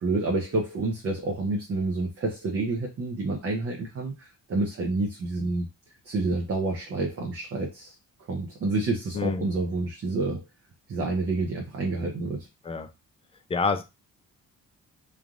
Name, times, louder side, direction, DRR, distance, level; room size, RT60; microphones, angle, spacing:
voice 1, 0.0-5.7 6.0-7.9 8.3-10.4 10.9-12.5, right 3 dB, 45° right, 0.7 m, -28 dB
voice 2, 9.1-9.5 12.6-12.9 13.5-13.8, left 4 dB, 20° left, 0.3 m, -27 dB
3.2 x 2.5 x 2.4 m
cardioid pair, 100°, 33 cm